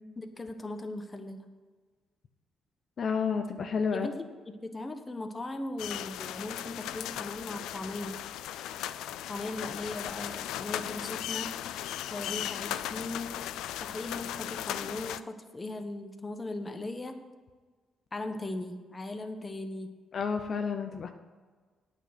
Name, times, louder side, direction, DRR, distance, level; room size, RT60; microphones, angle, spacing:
voice 1, 0.2-1.5 3.9-8.2 9.3-11.8 12.1-13.4 13.8-17.3 18.1-20.0, left 2 dB, 20° left, 6 dB, 1.1 m, -38 dB
voice 2, 3.0-4.1 20.1-21.1, left 5 dB, 55° left, 5 dB, 0.8 m, -30 dB
sound 1, 5.8-15.2, left 12 dB, 90° left, 0.4 m, -37 dB
9.1 x 6.3 x 7.7 m, 1.4 s
cardioid pair, 90°, 0 cm